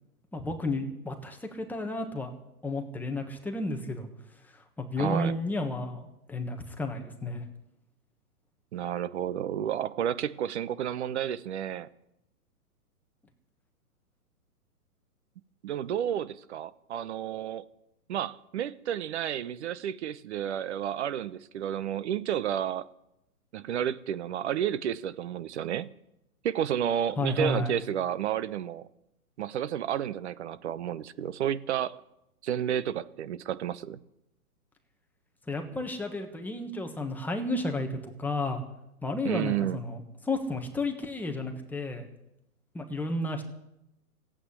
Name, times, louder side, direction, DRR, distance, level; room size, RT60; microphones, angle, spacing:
voice 1, 0.3-2.3 2.6-4.1 4.5-7.4 27.2-27.7 35.5-38.6 39.0-42.1 42.7-43.4, left 2 dB, 5° left, 4 dB, 1.3 m, -32 dB
voice 2, 5.0-5.4 8.7-11.9 15.6-17.6 18.1-22.9 23.5-25.9 26.4-28.9 29.4-32.0 32.4-34.0 39.2-39.8, right 10 dB, 45° right, 16 dB, 0.8 m, -31 dB
15.0 x 8.7 x 9.8 m, 0.85 s
hypercardioid pair, 145°, 45 cm